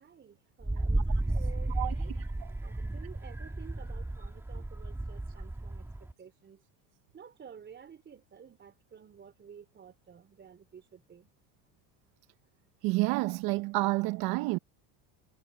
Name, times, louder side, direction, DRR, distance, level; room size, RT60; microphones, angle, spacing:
voice 1, 0.0-2.1 2.6-5.8 6.2-6.6 7.1-11.3, right 7 dB, 25° right, 3.6 m, -52 dB
Wind, 0.6-6.1, right 2 dB, 5° right, 1.5 m, -33 dB
voice 2, 1.7-2.5 12.8-14.6, right 23 dB, 55° right, 0.7 m, -30 dB
supercardioid pair, 130°, 43 cm